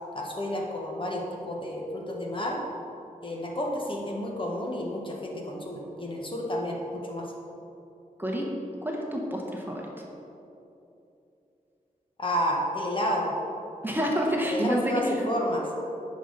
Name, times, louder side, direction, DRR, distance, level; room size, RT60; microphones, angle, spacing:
voice 1, 0.1-2.6 3.2-7.3 12.2-13.3 14.4-15.7, equal, 35° left, -1 dB, 1.3 m, -31 dB
voice 2, 8.8-9.9 13.8-15.3, equal, 15° right, -1 dB, 1.1 m, -28 dB
10.0 x 5.5 x 4.0 m, 2.8 s
wide cardioid pair, 75°, 15 cm